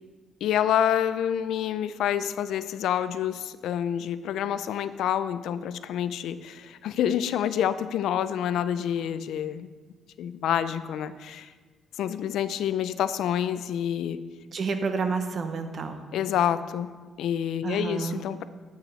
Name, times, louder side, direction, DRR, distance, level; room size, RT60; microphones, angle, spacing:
voice 1, 0.4-9.7 10.2-11.5 12.0-14.2 16.1-18.5, left 10 dB, 85° left, 13 dB, 0.4 m, -28 dB
voice 2, 14.5-16.0 17.6-18.2, right 4 dB, 45° right, 8 dB, 0.8 m, -29 dB
9.9 x 7.9 x 4.0 m, 1.4 s
cardioid pair, 145°, 0 cm